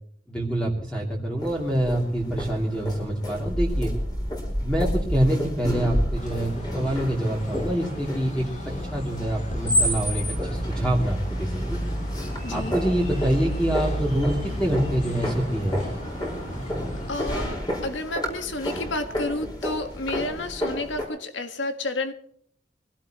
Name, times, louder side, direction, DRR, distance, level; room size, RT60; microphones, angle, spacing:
voice 1, 0.3-3.9 4.6-8.5 8.9-11.8 12.5-15.8, right 1 dB, 5° left, -3 dB, 2.8 m, -26 dB
sound 1, 1.4-21.0, equal, 25° left, 5.0 m, -31 dB
sound 2, 6.1-17.5, equal, 40° left, 3.6 m, -32 dB
voice 2, 12.4-12.7 17.1-22.1, left 2 dB, 90° left, 7 dB, 1.6 m, -31 dB
23.5 x 16.5 x 3.0 m, 0.63 s
head